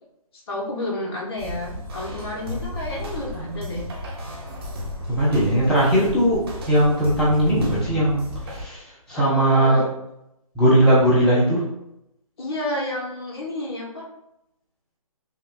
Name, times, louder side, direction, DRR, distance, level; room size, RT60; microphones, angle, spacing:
voice 1, 0.5-3.9 9.1-9.8 12.4-14.1, left 1 dB, 40° left, -2 dB, 1.1 m, -30 dB
sound 1, 1.4-8.6, left 1 dB, 40° right, 0.9 m, -33 dB
voice 2, 5.1-8.8 9.1-9.8 10.6-11.6, right 1 dB, 5° left, -9 dB, 0.6 m, -19 dB
5.5 x 2.4 x 2.2 m, 0.83 s
figure-of-eight pair, 150°, 19 cm